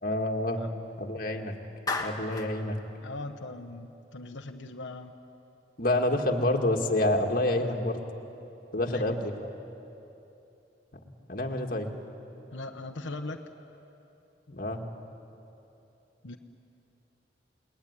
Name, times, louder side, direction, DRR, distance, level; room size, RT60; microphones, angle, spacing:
voice 1, 0.0-0.6 1.0-1.5 2.0-2.8 5.8-8.0 8.7-9.3 11.3-11.9 14.5-14.8, left 1 dB, 50° left, 3 dB, 2.1 m, -27 dB
Clapping, 1.9-2.5, left 3 dB, 20° left, 1.7 m, -32 dB
voice 2, 3.0-5.2 7.5-7.8 8.9-9.2 12.5-13.4 16.2-16.4, left 2 dB, 85° left, 3 dB, 1.1 m, -40 dB
29.5 x 20.5 x 9.8 m, 2.9 s
head